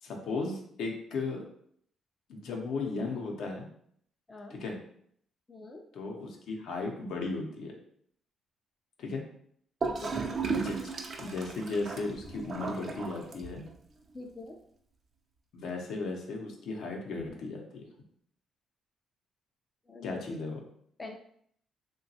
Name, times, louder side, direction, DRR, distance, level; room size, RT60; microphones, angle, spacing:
voice 1, 0.0-1.4 2.3-3.7 4.5-4.8 5.9-7.7 9.0-9.2 10.5-10.9 11.2-13.6 15.5-17.9 20.0-20.6, left 3 dB, 75° left, 1 dB, 0.6 m, -36 dB
voice 2, 5.5-5.8 9.8-10.2 14.1-14.6 19.9-20.2 21.0-21.2, left 2 dB, 20° left, 3 dB, 0.4 m, -44 dB
Gurgling / Toilet flush, 9.8-13.8, right 4 dB, 50° right, 0.4 m, -35 dB
2.9 x 2.2 x 2.7 m, 0.66 s
cardioid pair, 90°, 0 cm